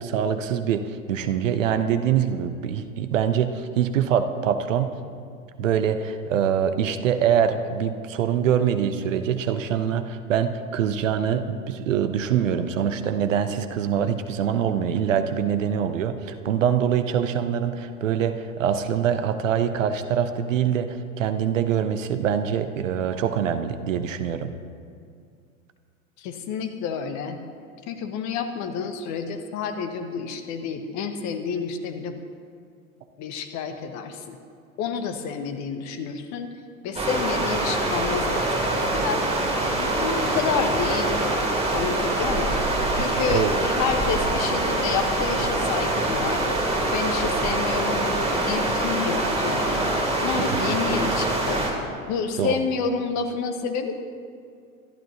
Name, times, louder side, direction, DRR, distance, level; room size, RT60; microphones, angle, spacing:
voice 1, 0.0-4.9 5.6-24.5 43.3-43.5 50.4-50.8 52.4-52.6, right 8 dB, 65° right, 10 dB, 1.0 m, -24 dB
voice 2, 26.2-27.4 27.9-32.2 33.2-34.4 34.8-36.5 36.8-39.2 39.7-41.4 41.7-42.6 43.0-46.6 46.9-49.9 50.2-51.7 52.1-53.9, left 6 dB, 40° left, 7 dB, 1.3 m, -29 dB
sound 1, 36.9-51.7, right 2 dB, 15° right, 2.7 m, -24 dB
25.0 x 12.0 x 2.9 m, 2.3 s
figure-of-eight pair, 80°, 42 cm